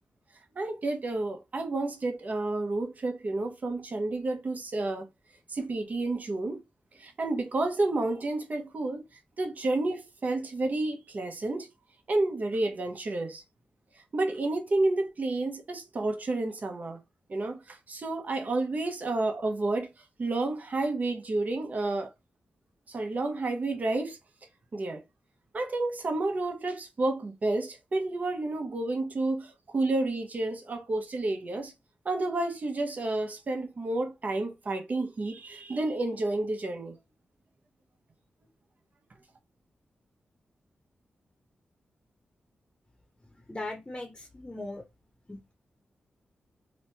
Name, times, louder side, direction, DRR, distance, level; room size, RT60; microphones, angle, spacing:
voice 1, 0.6-5.1 5.5-6.6 6.9-9.0 9.4-11.7 12.1-13.4 14.1-17.0 17.3-19.9 20.2-22.1 22.9-24.2 24.7-25.0 25.5-31.7 32.0-36.9, right 2 dB, 50° right, 0.7 m, -30 dB
voice 2, 43.5-44.8 45.3-45.4, left 2 dB, 20° left, 0.8 m, -38 dB
3.0 x 2.1 x 2.8 m
cardioid pair, 55°, 4 cm